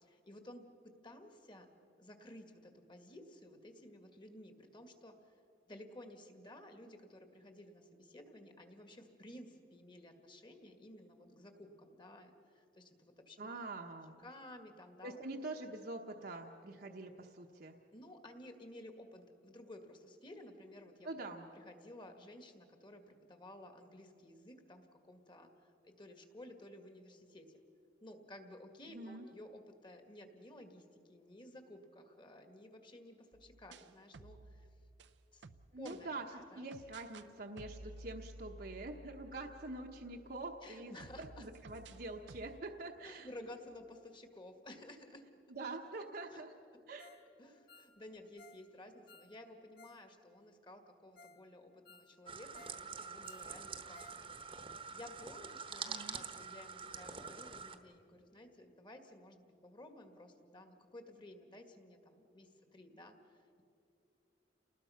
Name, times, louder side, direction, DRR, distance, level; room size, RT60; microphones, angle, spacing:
voice 1, 0.0-0.6 1.0-1.7 2.0-5.3 5.7-13.6 14.2-15.2 17.9-27.6 28.0-34.7 35.3-35.4 35.8-36.6 40.6-41.5 43.0-45.2 46.3-46.4 47.4-63.6, left 1 dB, 30° left, 6 dB, 1.9 m, -54 dB
voice 2, 13.4-14.2 15.0-17.8 21.0-21.5 28.9-29.3 35.7-36.2 36.5-43.3 45.5-46.5 46.9-47.1 55.8-56.2, right 2 dB, 60° right, 1 dB, 1.1 m, -45 dB
sound 1, 33.3-36.0 36.7-37.3 37.6-40.6 41.0-42.6, right 2 dB, 85° right, 0.7 m, -54 dB
Ringtone, 47.0-47.3 47.5-50.0 50.3-50.4 50.9-51.0 51.2-51.4 51.7-52.8 53.1-54.2 54.5-54.6 55.0-55.1, left 3 dB, 60° left, 1.2 m, -61 dB
sound 2, 52.3-57.8, right 5 dB, 30° right, 1.1 m, -46 dB
29.5 x 19.5 x 5.8 m, 2.6 s
head